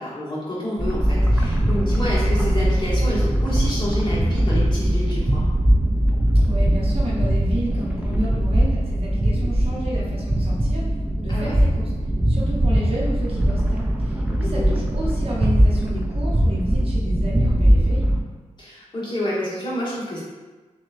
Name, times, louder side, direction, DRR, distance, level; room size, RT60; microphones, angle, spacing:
voice 1, 0.0-5.4 11.3-11.5 14.4-14.8 18.6-20.2, left 1 dB, 35° left, -8 dB, 1.2 m, -28 dB
sound 1, 0.8-18.2, right 1 dB, 10° right, 0.4 m, -20 dB
voice 2, 6.5-10.8 11.2-11.9 12.3-18.1, right 1 dB, 45° right, -4 dB, 0.8 m, -31 dB
6.0 x 2.2 x 2.5 m, 1.3 s
wide cardioid pair, 165°, 13 cm